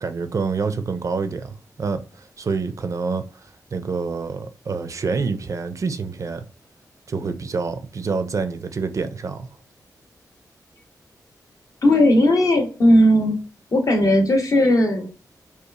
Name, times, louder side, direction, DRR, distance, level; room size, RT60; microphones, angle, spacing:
voice 1, 0.0-6.4 7.1-9.5, right 4 dB, 50° right, 0.4 m, -27 dB
voice 2, 11.8-13.4 13.7-15.1, left 1 dB, 55° left, 0.7 m, -16 dB
2.8 x 2.3 x 2.3 m
cardioid pair, 60°, 7 cm